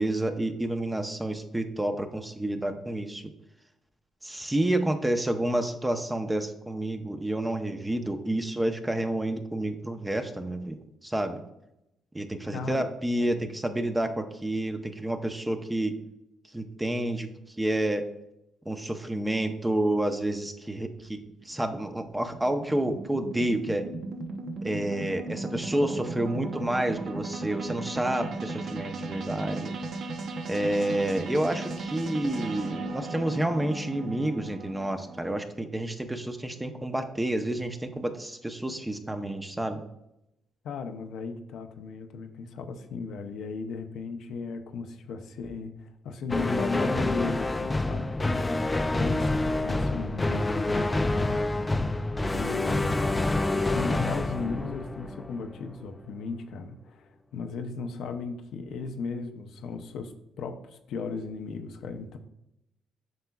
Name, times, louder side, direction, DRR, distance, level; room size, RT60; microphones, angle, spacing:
voice 1, 0.0-3.2 4.2-11.4 12.1-15.9 16.5-18.1 18.7-21.2 21.4-23.9 24.6-29.7 30.5-39.8, right 1 dB, 10° right, 6 dB, 0.7 m, -29 dB
voice 2, 12.5-12.9 13.3-13.5 40.6-51.4 52.3-62.2, left 4 dB, 75° left, 6 dB, 0.6 m, -36 dB
sound 1, 21.0-35.2, right 3 dB, 60° right, 0.9 m, -36 dB
sound 2, 46.3-55.7, left 2 dB, 20° left, 0.3 m, -27 dB
7.7 x 5.7 x 2.3 m, 0.84 s
cardioid pair, 90°, 0 cm